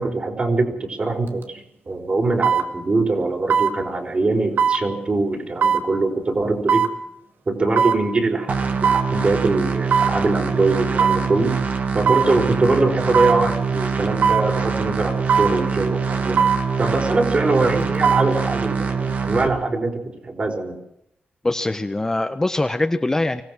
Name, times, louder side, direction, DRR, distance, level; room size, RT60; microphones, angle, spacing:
voice 1, 0.0-6.8 7.5-11.6 11.9-16.4 16.8-19.9 20.2-20.7, right 3 dB, 35° right, 3 dB, 4.8 m, -22 dB
sound 1, 1.3-1.4 2.4-2.7 3.5-3.7 4.6-4.8 5.6-5.9 6.7-6.9 7.8-8.0 8.8-9.1 9.9-10.2 11.0-11.2 12.1-12.3 13.1-13.4 14.2-14.5 15.3-15.6 16.4-16.6 17.8-18.3 18.7-18.8, right 7 dB, 90° right, 2.4 m, -18 dB
sound 2, 8.5-19.5, right 5 dB, 55° right, 2.6 m, -24 dB
voice 2, 21.4-23.4, left 2 dB, 15° left, 7 dB, 1.0 m, -22 dB
25.0 x 17.5 x 6.2 m, 0.79 s
wide cardioid pair, 135°, 3 cm